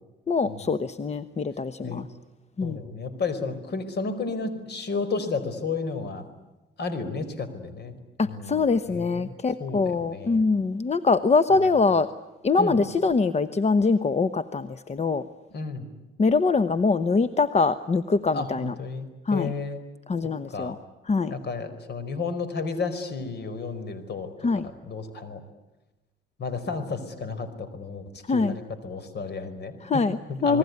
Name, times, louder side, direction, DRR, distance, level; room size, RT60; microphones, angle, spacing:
voice 1, 0.3-2.1 2.6-2.8 8.2-12.1 12.4-15.2 16.2-18.7 19.3-19.5 20.1-20.7 21.1-21.3 24.4-24.7 28.3-28.5 29.8-30.2 30.4-30.6, left 4 dB, 35° left, 12 dB, 1.0 m, -23 dB
voice 2, 2.6-6.2 6.8-8.0 8.2-9.3 9.6-10.4 11.5-11.7 12.6-12.8 15.5-15.9 18.3-19.8 20.5-20.8 21.3-24.3 24.6-25.4 26.4-30.0 30.3-30.6, left 4 dB, 55° left, 12 dB, 4.9 m, -32 dB
28.5 x 20.5 x 9.6 m, 1.1 s
cardioid pair, 90°, 20 cm